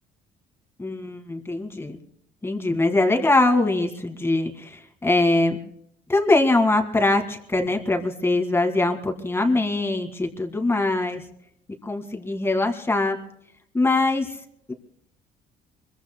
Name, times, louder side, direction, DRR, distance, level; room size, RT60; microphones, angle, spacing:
voice 1, 0.8-2.0 2.4-5.6 6.1-11.2 11.8-13.2 13.7-14.3 14.7-14.8, left 2 dB, 15° left, 4 dB, 1.9 m, -22 dB
25.0 x 22.0 x 2.2 m, 0.72 s
cardioid pair, 110°, 17 cm